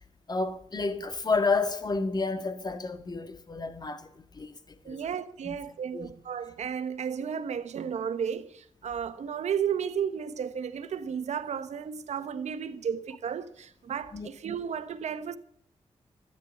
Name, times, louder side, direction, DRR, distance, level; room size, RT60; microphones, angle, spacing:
voice 1, 0.3-5.1 5.4-5.6 5.9-6.1 14.1-14.3, left 3 dB, 35° left, 1.9 m, -31 dB
voice 2, 4.8-15.4, right 7 dB, 70° right, 1.2 m, -33 dB
13.5 x 10.0 x 7.8 m
cardioid pair, 80°, 12 cm